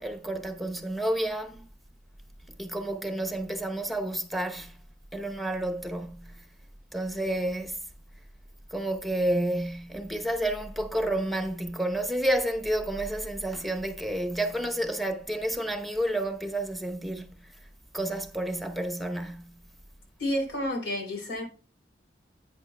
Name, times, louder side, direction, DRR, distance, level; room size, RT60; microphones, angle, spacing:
voice 1, 0.0-1.7 2.6-4.8 5.1-6.4 6.9-7.8 8.7-17.5 17.9-19.6, right 1 dB, ahead, 0.9 m, -30 dB
voice 2, 20.2-21.4, left 1 dB, 85° left, 3.8 m, -30 dB
10.5 x 8.9 x 2.3 m
head